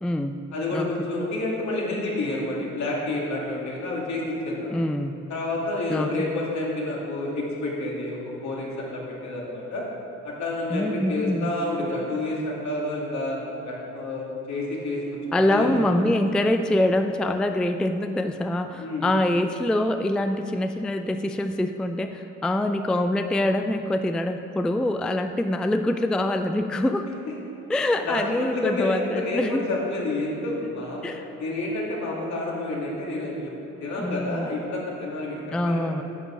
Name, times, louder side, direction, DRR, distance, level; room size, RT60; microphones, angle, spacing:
voice 1, 0.0-0.4 0.7-1.1 4.7-5.2 5.9-6.1 10.7-11.5 15.3-27.1 27.7-29.6 31.0-31.2 34.0-34.5 35.5-36.0, left 1 dB, 5° left, 7 dB, 0.3 m, -25 dB
voice 2, 0.5-4.7 5.3-9.8 10.2-13.4 13.6-15.7 18.8-19.1 28.0-31.1 31.4-33.5 33.8-36.0, left 2 dB, 65° left, -3 dB, 2.6 m, -29 dB
9.9 x 7.2 x 5.9 m, 2.9 s
cardioid pair, 90°, 30 cm